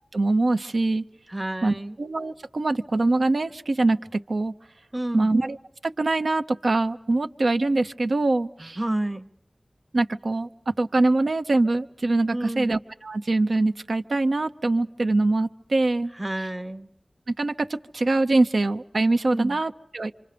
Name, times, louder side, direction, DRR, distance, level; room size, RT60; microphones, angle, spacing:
voice 1, 0.1-1.0 1.6-4.5 5.1-5.6 5.8-8.8 9.9-16.1 17.3-20.1, right 2 dB, 80° right, 8 dB, 0.8 m, -23 dB
voice 2, 1.3-2.0 4.9-5.3 8.6-9.3 12.3-12.7 16.2-16.9 19.3-19.6, right 1 dB, 20° right, 11 dB, 0.9 m, -30 dB
27.0 x 26.0 x 5.2 m, 0.75 s
wide cardioid pair, 70°, 0 cm